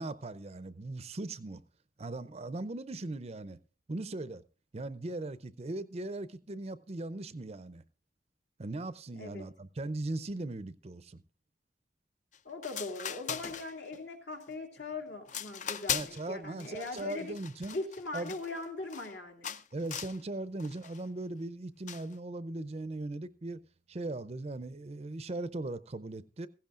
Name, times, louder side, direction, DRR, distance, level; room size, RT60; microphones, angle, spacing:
voice 1, 0.0-1.6 2.0-3.6 3.9-4.4 4.7-7.8 8.6-11.2 15.9-17.8 18.1-18.4 19.7-23.6 23.9-26.5, right 2 dB, 35° right, 0.5 m, -39 dB
sound 1, 12.3-12.4 12.6-14.0 14.4-14.8 15.3-16.3 16.6-19.1 19.4-20.2 20.6-21.0 21.9-22.1, left 8 dB, 40° left, 0.5 m, -39 dB
voice 2, 12.4-17.4 17.7-19.6, left 3 dB, 70° left, 2.6 m, -40 dB
16.0 x 15.5 x 2.5 m
head